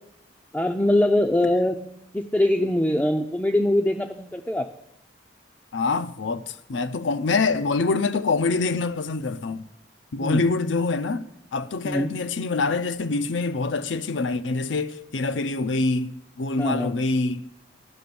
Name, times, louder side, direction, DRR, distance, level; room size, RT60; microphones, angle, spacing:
voice 1, 0.5-1.8 2.1-4.7 10.2-10.4 11.8-12.1 16.6-17.0, left 1 dB, 10° left, 0.4 m, -22 dB
voice 2, 5.7-9.7 10.1-11.2 11.5-17.4, left 3 dB, 80° left, 0.6 m, -25 dB
12.0 x 6.0 x 6.9 m
head